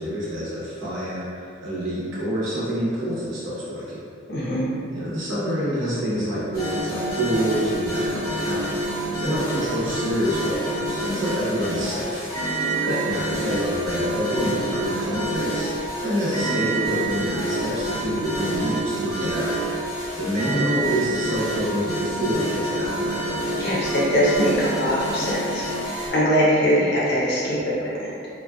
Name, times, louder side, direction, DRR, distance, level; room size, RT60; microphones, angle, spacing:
voice 1, 0.0-4.0 4.9-12.3 13.0-19.5 20.2-23.5, equal, 70° right, -9 dB, 0.8 m, -27 dB
voice 2, 4.3-4.7 12.8-13.0 23.6-28.1, equal, 50° left, -7 dB, 0.6 m, -22 dB
sound 1, 6.5-26.1, right 1 dB, 15° left, 0.6 m, -27 dB
2.5 x 2.2 x 2.2 m, 2.4 s
head